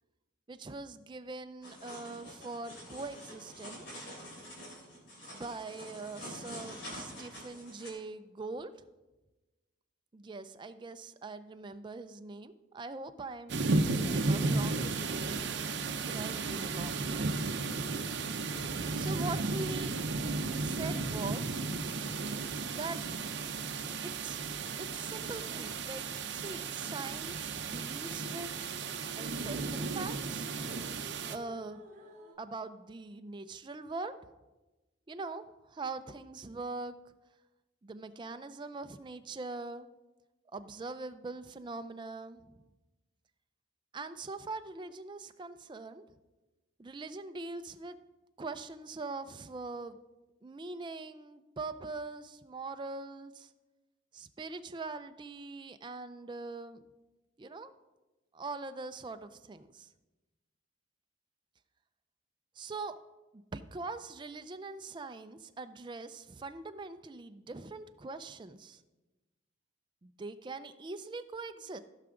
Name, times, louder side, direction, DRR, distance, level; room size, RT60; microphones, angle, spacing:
voice 1, 0.5-4.1 5.3-8.7 10.1-13.6 14.2-15.5 15.8-17.7 18.9-20.0 20.6-21.6 22.7-23.0 24.0-24.4 24.8-28.5 29.2-30.5 31.3-31.8 32.4-34.1 35.1-37.0 37.8-39.9 40.5-42.6 43.9-46.1 46.8-48.0 48.4-50.0 50.4-53.5 54.1-56.8 57.4-57.7 58.3-59.9 62.6-63.0 63.3-68.8 70.0-71.8, right 3 dB, 25° right, 9 dB, 0.4 m, -42 dB
sound 1, 1.6-7.9, equal, 60° left, 2.7 m, -46 dB
sound 2, 13.5-31.4, right 3 dB, 60° right, 0.7 m, -34 dB
sound 3, 27.6-32.4, equal, 40° right, 1.9 m, -55 dB
15.5 x 5.9 x 3.7 m, 1.1 s
head